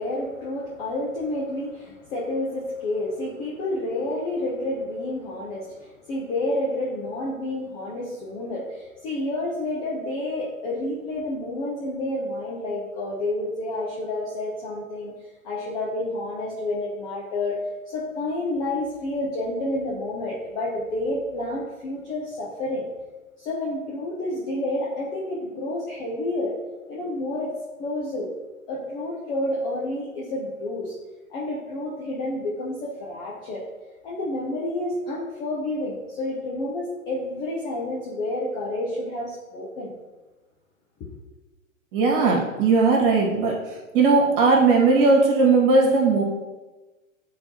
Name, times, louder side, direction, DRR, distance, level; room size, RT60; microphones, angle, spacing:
voice 1, 0.0-15.1 15.4-17.6 17.9-22.9 23.4-26.6 26.9-27.5 27.8-28.3 28.7-30.9 31.3-33.6 34.0-39.9, left 1 dB, 10° left, -5 dB, 0.3 m, -29 dB
voice 2, 41.9-43.6 43.9-46.2, right 3 dB, 40° right, -2 dB, 1.8 m, -18 dB
9.5 x 3.9 x 2.8 m, 1.2 s
figure-of-eight pair, 100°, 41 cm